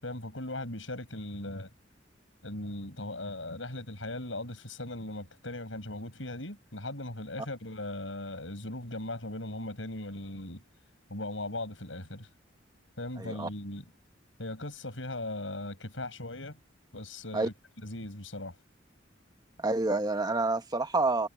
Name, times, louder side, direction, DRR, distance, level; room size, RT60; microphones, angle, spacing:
voice 1, 0.0-1.7 2.4-10.6 11.1-12.3 13.0-13.9 14.4-16.6 16.9-18.6, left 1 dB, 90° left, 7.0 m, -38 dB
voice 2, 13.2-13.5 17.3-17.5 19.6-21.3, right 2 dB, 20° right, 1.5 m, -28 dB
head